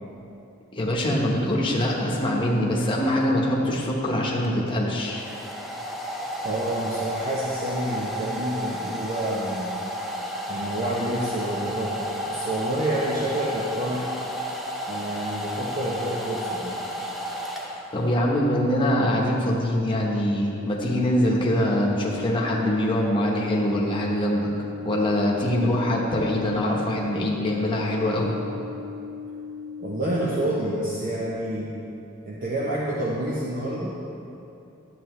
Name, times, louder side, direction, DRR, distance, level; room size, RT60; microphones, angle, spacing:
voice 1, 0.7-5.2 17.9-24.5 24.8-28.4, left 1 dB, 25° left, -3 dB, 1.1 m, -23 dB
Domestic sounds home sounds, 4.4-18.2, equal, ahead, 0.6 m, -32 dB
voice 2, 6.4-9.7 10.5-14.1 14.9-16.8 29.8-31.7 32.3-34.0, right 1 dB, 40° right, -5 dB, 0.8 m, -28 dB
sound 1, 20.6-30.6, left 5 dB, 65° right, 1.3 m, -38 dB
11.5 x 8.3 x 3.2 m, 2.8 s
head